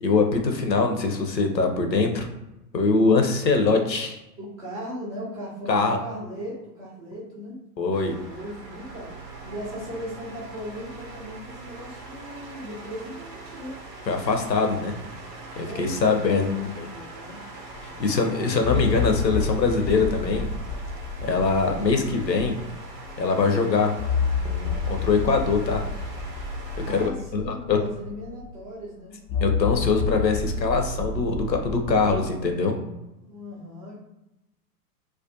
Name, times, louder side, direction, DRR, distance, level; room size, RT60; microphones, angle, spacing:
voice 1, 0.0-2.3 2.7-4.2 5.7-6.0 7.8-8.1 14.1-14.9 15.6-16.5 16.8-16.9 18.0-20.5 21.2-22.6 23.2-23.9 24.4-25.8 26.9-27.0 27.3-27.8 29.4-32.7, left 4 dB, 85° left, 4 dB, 0.6 m, -23 dB
voice 2, 4.4-7.6 8.3-9.1 9.4-13.8 15.4-17.4 17.8-18.6 26.8-29.2 33.2-34.0, equal, 20° right, -8 dB, 0.4 m, -38 dB
sound 1, 7.9-27.1, right 3 dB, 85° right, 0.8 m, -42 dB
sound 2, 17.7-17.8 18.6-23.2 24.0-28.6 29.3-32.3, left 5 dB, 40° left, 0.5 m, -29 dB
2.2 x 2.2 x 2.6 m, 0.94 s
figure-of-eight pair, 100°, 49 cm